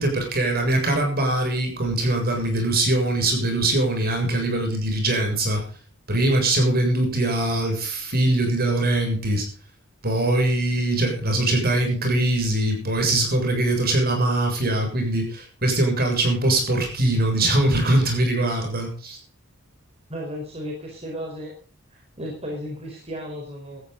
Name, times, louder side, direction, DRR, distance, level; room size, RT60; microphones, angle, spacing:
voice 1, 0.0-5.6 6.1-9.4 10.0-19.2, right 1 dB, 45° right, 3 dB, 7.2 m, -22 dB
voice 2, 20.1-21.5 21.9-23.8, equal, 30° right, 0 dB, 4.7 m, -34 dB
17.5 x 14.0 x 4.0 m, 0.38 s
head